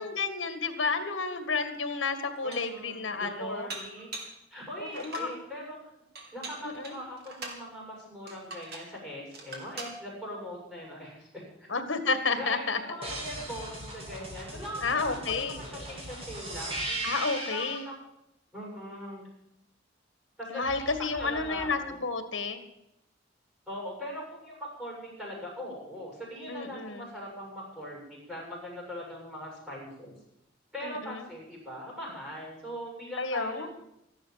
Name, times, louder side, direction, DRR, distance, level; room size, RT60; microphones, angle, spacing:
voice 1, 0.0-3.7 4.8-5.3 6.6-7.0 11.7-12.8 14.8-15.6 17.0-17.9 20.5-22.6 26.5-27.1 30.8-31.2 33.2-33.7, left 4 dB, 75° left, 8 dB, 1.9 m, -31 dB
Dishes pots and pans, 1.6-1.7 2.2-2.8 3.7-4.4 4.9-5.4 6.2-7.6 8.3-8.9 9.3-10.0, right 3 dB, 60° right, 2.9 m, -42 dB
voice 2, 2.4-4.1 4.5-5.8 6.3-11.7 12.4-18.0 18.5-19.2 20.4-20.9 21.2-22.0 23.7-30.1 30.7-33.7, equal, 5° right, -4 dB, 6.9 m, -41 dB
sound 1, 13.0-17.9 20.6-21.7, right 1 dB, 30° right, 3.7 m, -38 dB
14.0 x 11.0 x 7.5 m, 0.85 s
head